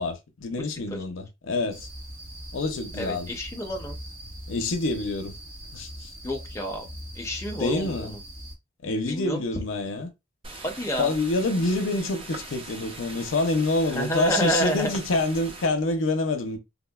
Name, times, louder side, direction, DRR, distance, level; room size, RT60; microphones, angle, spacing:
voice 1, 0.0-1.9 2.5-3.3 4.5-5.3 5.7-6.1 7.6-8.2 8.8-10.1 11.0-16.6, left 2 dB, 85° left, 0.5 m, -27 dB
sound 1, 1.7-8.6, equal, 75° right, 1.3 m, -41 dB
voice 2, 3.0-4.0 6.2-6.8 7.1-8.2 9.1-9.4 10.6-11.1 13.9-14.9, equal, 15° left, 0.6 m, -29 dB
sound 2, 10.4-15.7, right 2 dB, 30° right, 0.6 m, -41 dB
3.6 x 2.1 x 2.2 m
head